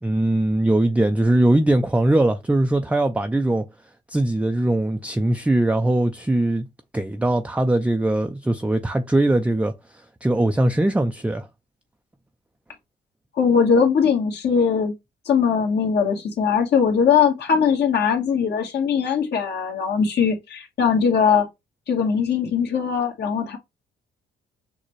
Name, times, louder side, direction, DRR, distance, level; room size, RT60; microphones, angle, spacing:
voice 1, 0.0-3.7 4.1-6.7 6.9-9.7 10.2-11.5, right 1 dB, 5° right, 0.4 m, -20 dB
voice 2, 13.3-14.9 15.2-21.5 21.9-23.6, left 6 dB, 60° left, 1.5 m, -20 dB
6.4 x 2.2 x 3.1 m
cardioid pair, 90°, 20 cm